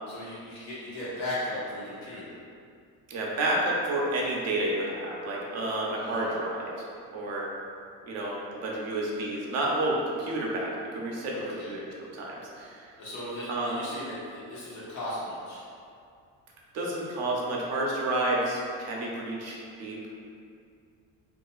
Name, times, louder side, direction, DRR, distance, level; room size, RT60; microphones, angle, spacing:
voice 1, 0.1-2.3 6.0-6.3 11.3-11.7 13.0-15.6, left 1 dB, 85° left, -9 dB, 1.1 m, -37 dB
voice 2, 3.1-6.7 7.1-7.5 8.1-11.4 11.7-12.9 13.5-13.7 16.7-20.0, right 1 dB, 50° right, -3 dB, 0.5 m, -30 dB
2.6 x 2.4 x 2.3 m, 2.4 s
cardioid pair, 140°, 34 cm